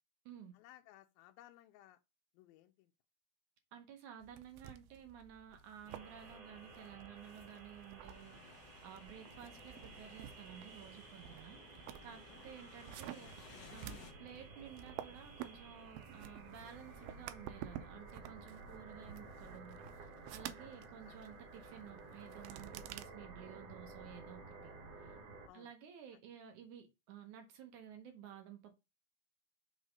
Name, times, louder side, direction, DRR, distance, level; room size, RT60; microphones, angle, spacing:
voice 1, 0.5-2.0 2.3-2.9 12.3-12.6 13.1-13.4 13.7-13.9 20.6-21.2 25.5-25.7, left 14 dB, 85° left, 2.4 m, -61 dB
voice 2, 3.7-13.3 13.7-25.2 25.5-28.8, right 9 dB, 70° right, 2.0 m, -54 dB
sound 1, 4.2-23.0, right 11 dB, 90° right, 2.4 m, -52 dB
sound 2, 5.9-25.5, right 3 dB, 45° right, 2.7 m, -54 dB
sound 3, 8.1-14.1, left 5 dB, 65° left, 1.0 m, -59 dB
5.8 x 3.9 x 5.1 m
omnidirectional pair, 4.2 m